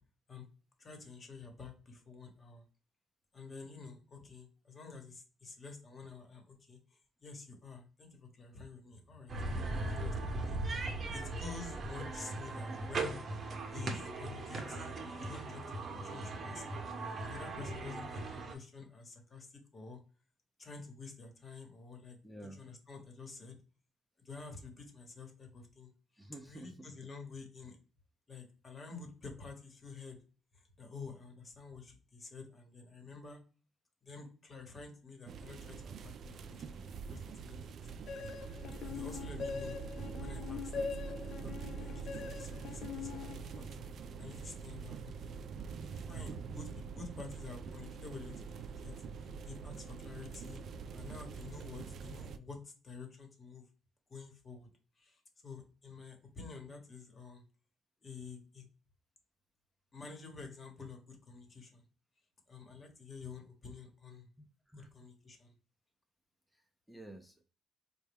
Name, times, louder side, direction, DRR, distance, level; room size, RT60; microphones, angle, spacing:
voice 1, 0.8-2.6 3.3-13.2 13.7-16.6 17.2-20.0 20.6-22.2 22.5-23.6 24.2-25.9 26.5-27.8 28.3-30.2 30.5-33.4 34.0-38.1 38.5-39.8 40.2-43.6 44.2-45.4 46.0-48.9 49.4-50.6 50.9-53.6 54.1-54.7 55.0-57.4 58.0-58.7 59.9-61.8 62.5-64.3 64.7-65.5, left 4 dB, 40° left, 4 dB, 1.1 m, -50 dB
sound 1, 9.3-18.5, right 2 dB, 45° right, 0.8 m, -39 dB
voice 2, 22.2-22.6 26.2-26.9 64.4-64.9 66.5-67.4, right 1 dB, 5° right, 2 dB, 0.6 m, -51 dB
sound 2, 35.3-52.4, right 5 dB, 65° right, 0.3 m, -45 dB
sound 3, 38.1-43.9, left 6 dB, 65° left, 0.4 m, -43 dB
4.1 x 2.2 x 3.4 m, 0.37 s
cardioid pair, 90°, 0 cm